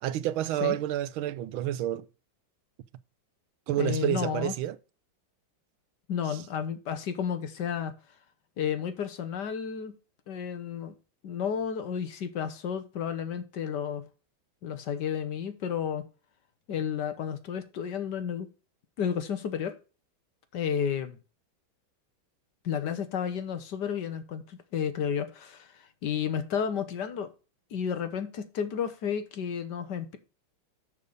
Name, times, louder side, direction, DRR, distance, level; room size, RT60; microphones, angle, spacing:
voice 1, 0.0-2.1 3.7-4.8 6.3-6.4, right 12 dB, 85° right, 1.5 m, -29 dB
voice 2, 3.8-4.5 6.1-7.9 8.6-9.9 10.3-10.9 11.2-14.0 14.6-16.1 16.7-18.5 19.0-19.8 20.5-21.2 22.6-27.3 27.7-30.2, left 7 dB, 60° left, 1.4 m, -32 dB
6.8 x 6.7 x 5.1 m
omnidirectional pair, 2.2 m